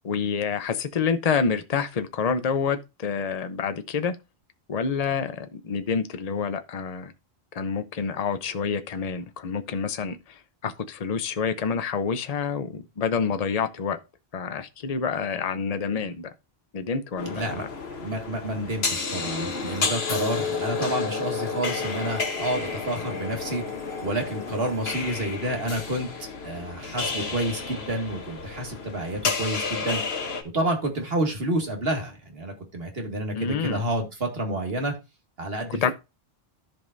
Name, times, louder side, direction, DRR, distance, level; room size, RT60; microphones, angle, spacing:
voice 1, 0.0-4.2 4.7-7.1 7.5-10.2 10.6-14.0 14.3-16.3 16.7-17.7 33.4-33.8 35.8-35.9, left 6 dB, 40° left, 0.8 m, -27 dB
sound 1, 17.2-30.4, left 4 dB, 75° left, 1.5 m, -31 dB
voice 2, 17.2-17.7 18.0-23.6 24.0-26.1 26.4-30.0 30.5-34.9 35.4-35.9, right 1 dB, 70° right, 2.2 m, -29 dB
sound 2, 19.1-27.6, equal, 5° left, 1.6 m, -48 dB
14.5 x 5.2 x 2.6 m
omnidirectional pair, 1.1 m